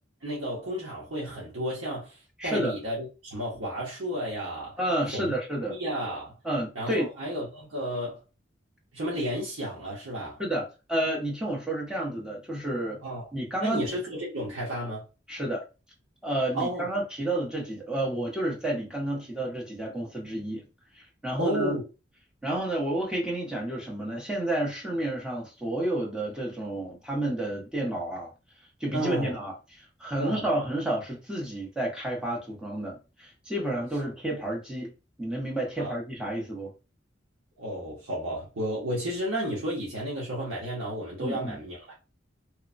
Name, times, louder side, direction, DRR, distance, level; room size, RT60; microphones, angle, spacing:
voice 1, 0.2-4.8 5.1-5.3 5.7-6.3 6.7-8.2 8.9-10.4 13.0-13.3 13.6-15.1 16.5-16.9 21.4-21.8 28.9-29.4 30.2-30.5 35.8-36.0 37.6-41.9, equal, 90° right, 0.9 m, -32 dB
voice 2, 2.4-2.7 4.8-5.8 6.4-7.1 10.4-13.0 13.3-13.8 15.3-15.6 16.2-20.6 21.2-21.7 22.4-28.3 28.8-29.5 30.0-34.9 35.2-36.7 41.2-41.6, right 1 dB, 5° right, 0.7 m, -30 dB
3.0 x 2.1 x 2.4 m
head